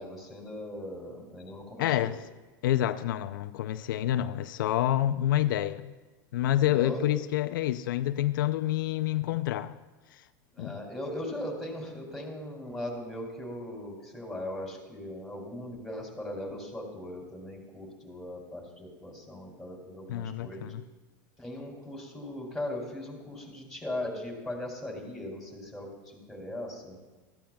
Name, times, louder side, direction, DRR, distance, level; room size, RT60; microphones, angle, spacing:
voice 1, 0.0-2.1 6.6-7.2 10.5-20.7 21.4-27.0, left 1 dB, ahead, 3.0 m, -39 dB
voice 2, 1.8-2.2 2.6-5.9 6.3-9.7 10.1-10.2 10.6-10.8 20.1-20.8, left 13 dB, 85° left, 0.4 m, -28 dB
17.0 x 13.0 x 2.3 m
supercardioid pair, 125°, 11 cm